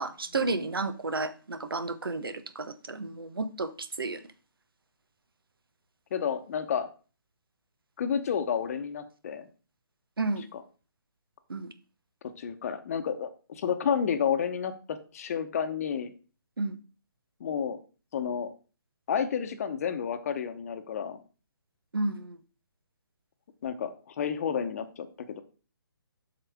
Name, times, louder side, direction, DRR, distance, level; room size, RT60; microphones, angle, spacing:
voice 1, 0.0-4.2 10.2-10.5 11.5-11.7 16.6-16.8 21.9-22.4, right 3 dB, 75° right, 12 dB, 0.9 m, -32 dB
voice 2, 6.1-6.9 8.0-9.5 10.5-10.6 12.2-16.1 17.4-17.8 18.1-18.5 19.1-21.2 23.6-25.4, left 7 dB, 40° left, 9 dB, 0.9 m, -31 dB
7.7 x 6.0 x 3.5 m, 0.36 s
figure-of-eight pair, 145°, 12 cm